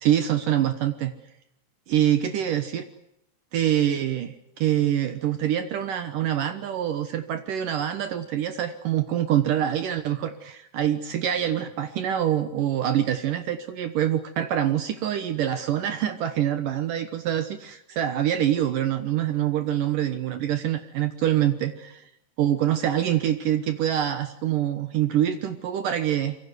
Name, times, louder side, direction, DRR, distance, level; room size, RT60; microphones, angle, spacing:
voice 1, 0.0-1.1 1.9-2.9 3.5-22.0 22.4-26.4, right 11 dB, 65° right, 10 dB, 2.5 m, -25 dB
26.5 x 24.0 x 8.1 m, 0.77 s
omnidirectional pair, 4.6 m